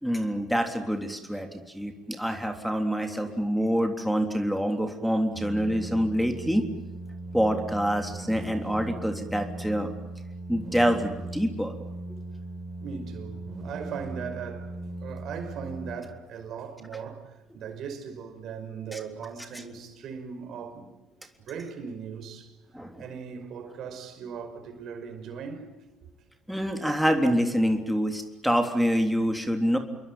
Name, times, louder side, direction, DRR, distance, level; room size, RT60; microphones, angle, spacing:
voice 1, 0.0-6.7 7.3-9.9 10.5-11.7 18.9-19.0 19.5-19.6 22.7-23.0 26.5-29.8, equal, ahead, 3.5 m, -26 dB
sound 1, 5.3-15.9, right 2 dB, 40° right, 5.6 m, -38 dB
voice 2, 12.8-14.7 15.0-20.9 21.4-22.5 23.0-25.7, right 6 dB, 55° right, 5.5 m, -39 dB
28.5 x 22.5 x 9.0 m
hypercardioid pair, 65°, 0 cm